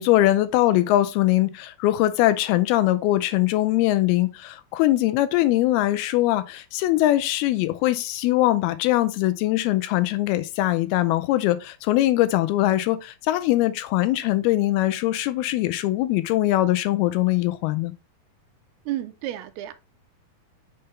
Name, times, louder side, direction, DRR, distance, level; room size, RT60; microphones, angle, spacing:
voice 1, 0.0-17.9, left 15 dB, 80° left, 2.4 m, -22 dB
voice 2, 18.9-19.7, right 13 dB, 85° right, 2.5 m, -31 dB
6.7 x 5.5 x 3.2 m
omnidirectional pair, 4.6 m